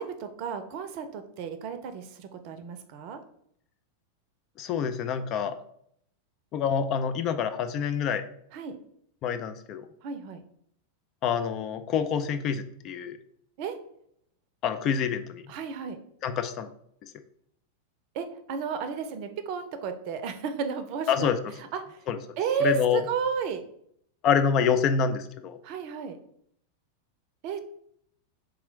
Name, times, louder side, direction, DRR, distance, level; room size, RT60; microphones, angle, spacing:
voice 1, 0.0-3.2 8.5-8.8 10.0-10.4 13.6-13.8 15.5-16.0 18.1-21.3 21.7-22.0 22.4-23.6 25.6-26.2 27.4-27.6, right 6 dB, 45° right, 9 dB, 0.5 m, -32 dB
voice 2, 4.6-5.6 6.5-8.2 9.2-9.9 11.2-13.2 14.6-15.4 16.2-16.7 21.1-21.4 22.1-22.2 22.6-23.0 24.2-25.6, left 7 dB, 35° left, 9 dB, 0.4 m, -26 dB
3.7 x 3.0 x 4.5 m, 0.69 s
figure-of-eight pair, 90°, 0 cm